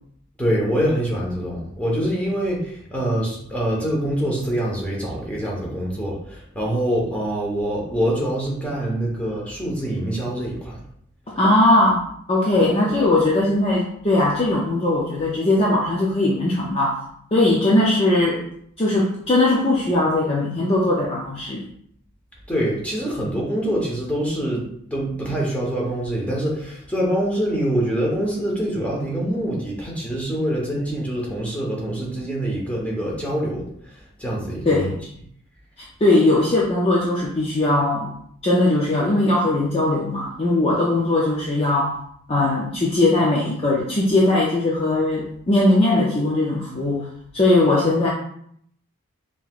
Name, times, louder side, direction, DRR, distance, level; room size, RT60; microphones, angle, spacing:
voice 1, 0.4-10.8 22.5-24.6 24.9-34.9, right 1 dB, 5° left, -4 dB, 1.1 m, -25 dB
voice 2, 11.4-17.0 17.3-18.4 18.8-21.7 34.7-35.0 36.0-38.1 38.4-42.0 42.3-47.1 47.3-48.1, left 2 dB, 25° left, -4 dB, 0.5 m, -19 dB
5.6 x 2.9 x 2.4 m, 0.67 s
head